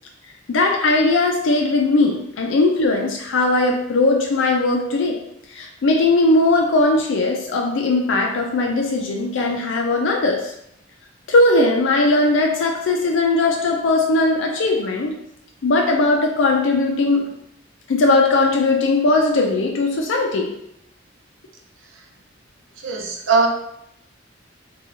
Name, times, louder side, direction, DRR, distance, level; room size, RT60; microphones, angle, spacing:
voice 1, 0.5-5.2 5.5-10.5 11.3-15.1 15.6-17.3 17.9-20.5, left 2 dB, 70° left, 1 dB, 0.4 m, -19 dB
voice 2, 22.8-23.5, right 4 dB, 75° right, 1 dB, 0.6 m, -19 dB
4.0 x 2.3 x 2.8 m, 0.76 s
head